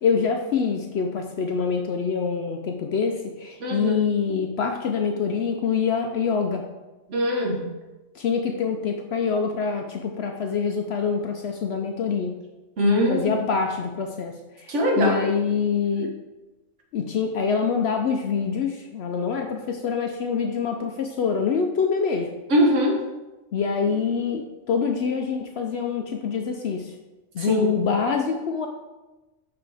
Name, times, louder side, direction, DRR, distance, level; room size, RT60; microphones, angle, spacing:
voice 1, 0.0-6.6 8.1-12.3 13.1-16.1 16.9-22.3 23.5-26.9 27.3-28.7, left 6 dB, 65° left, 4 dB, 0.7 m, -25 dB
voice 2, 3.6-4.0 7.1-7.7 12.8-13.4 14.7-15.2 22.5-23.0 27.4-27.8, equal, 60° right, 0 dB, 1.4 m, -22 dB
5.9 x 5.6 x 3.4 m, 1.1 s
omnidirectional pair, 1.4 m